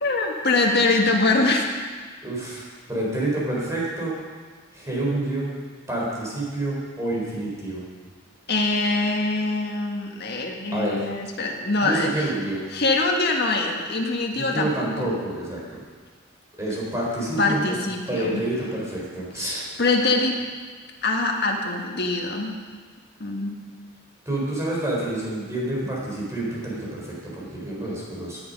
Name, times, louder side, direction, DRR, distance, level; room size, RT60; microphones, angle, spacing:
voice 1, 0.0-1.7 8.5-12.3 12.7-15.1 17.4-18.4 19.4-20.4 21.0-22.6 23.2-23.6, left 3 dB, 50° left, 0 dB, 1.9 m, -23 dB
voice 2, 2.2-4.1 4.7-5.6 5.9-7.9 10.7-11.0 11.8-12.6 14.4-15.8 16.6-17.8 18.1-19.6 24.3-28.4, right 1 dB, 15° right, -5 dB, 4.1 m, -28 dB
18.0 x 8.5 x 5.4 m, 1.5 s
head